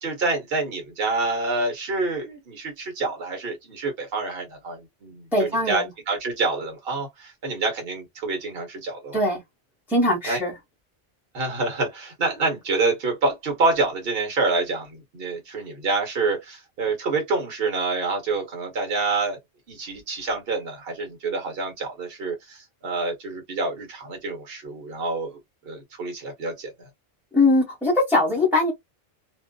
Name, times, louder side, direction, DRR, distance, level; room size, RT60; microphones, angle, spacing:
voice 1, 0.0-9.2 10.3-10.4 11.3-19.4 19.7-26.9, right 3 dB, 55° right, 1.3 m, -27 dB
voice 2, 5.3-5.9 9.1-9.4 9.9-10.5 27.3-28.7, left 2 dB, ahead, 1.0 m, -21 dB
2.7 x 2.5 x 2.2 m
omnidirectional pair, 1.2 m